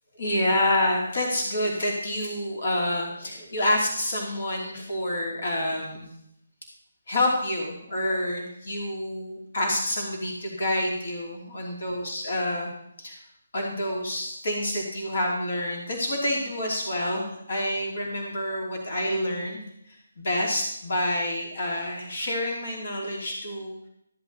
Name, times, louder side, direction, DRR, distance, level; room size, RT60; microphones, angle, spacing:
voice 1, 0.2-6.1 7.1-12.7 13.0-13.2 13.5-23.7, left 1 dB, 60° left, 0 dB, 2.8 m, -28 dB
13.5 x 8.6 x 4.0 m, 0.75 s
hypercardioid pair, 160°, 0 cm